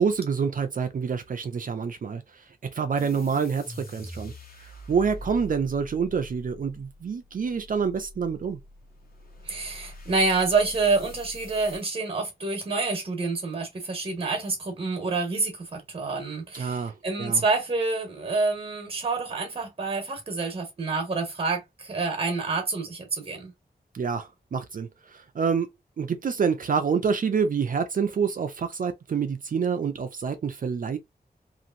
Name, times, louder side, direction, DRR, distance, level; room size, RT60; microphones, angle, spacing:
voice 1, 0.0-2.2 2.7-4.3 4.9-8.6 16.5-16.9 17.2-17.4 23.9-25.7 26.0-31.0, right 6 dB, 55° right, 0.4 m, -27 dB
sound 1, 3.0-11.9, left 1 dB, 65° left, 1.1 m, -44 dB
voice 2, 9.4-23.5, right 3 dB, 40° right, 1.1 m, -27 dB
2.9 x 2.5 x 2.5 m
wide cardioid pair, 140°, 17 cm